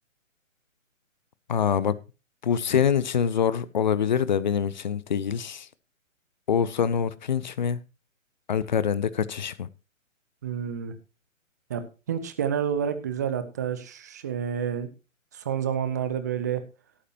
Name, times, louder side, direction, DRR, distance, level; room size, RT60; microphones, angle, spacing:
voice 1, 1.5-2.0 2.4-5.7 6.5-7.8 8.5-9.7, left 7 dB, 35° left, 0.7 m, -25 dB
voice 2, 10.4-10.9 11.7-14.9 15.3-16.6, right 8 dB, 15° right, 0.6 m, -29 dB
17.0 x 8.7 x 2.9 m
figure-of-eight pair, 135°, 40 cm